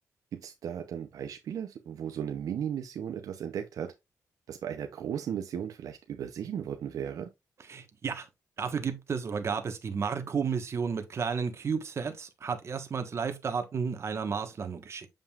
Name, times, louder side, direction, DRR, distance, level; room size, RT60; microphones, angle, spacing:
voice 1, 0.3-3.9 4.5-7.3, right 8 dB, 80° right, 0.7 m, -36 dB
voice 2, 7.7-8.3 8.6-15.1, right 6 dB, 50° right, 1.3 m, -32 dB
7.4 x 5.3 x 2.4 m
cardioid pair, 95°, 6 cm